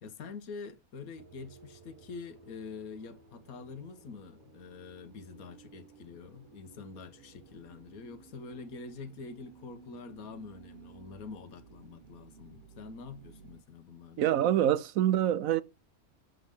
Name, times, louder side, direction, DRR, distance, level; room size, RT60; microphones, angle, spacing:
voice 1, 0.0-14.4, left 4 dB, 80° left, 1.4 m, -46 dB
sound 1, 1.1-13.6, right 5 dB, 35° right, 1.4 m, -56 dB
voice 2, 14.2-15.6, right 11 dB, 75° right, 1.0 m, -25 dB
7.9 x 3.6 x 3.5 m
omnidirectional pair, 1.5 m